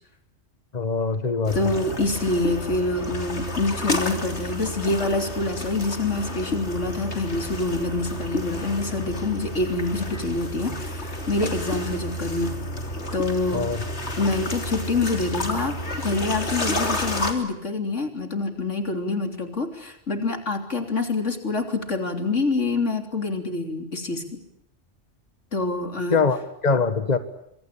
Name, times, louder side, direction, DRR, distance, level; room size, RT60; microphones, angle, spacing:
voice 1, 0.7-1.7 13.5-13.8 26.1-27.2, left 4 dB, 35° left, 10 dB, 1.6 m, -23 dB
voice 2, 1.5-12.5 13.1-13.7 14.2-15.8 16.0-24.4 25.5-26.2, left 3 dB, 85° left, 6 dB, 3.8 m, -26 dB
sound 1, 1.5-17.3, left 1 dB, 65° left, 3.7 m, -30 dB
26.5 x 24.0 x 8.5 m, 0.75 s
omnidirectional pair, 1.2 m